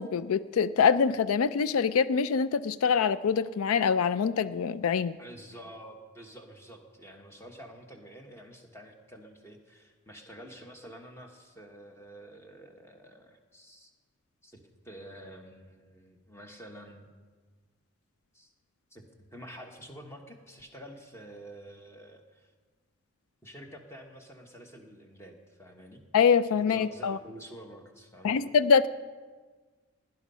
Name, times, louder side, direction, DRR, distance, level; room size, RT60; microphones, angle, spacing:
voice 1, 0.0-5.1 26.1-27.2 28.2-28.9, left 6 dB, 80° left, 16 dB, 0.4 m, -24 dB
voice 2, 5.2-13.9 14.4-17.1 18.3-18.5 18.9-22.5 23.4-26.0 26.7-28.4, equal, 10° left, 3 dB, 1.2 m, -48 dB
17.0 x 10.5 x 5.5 m, 1.5 s
head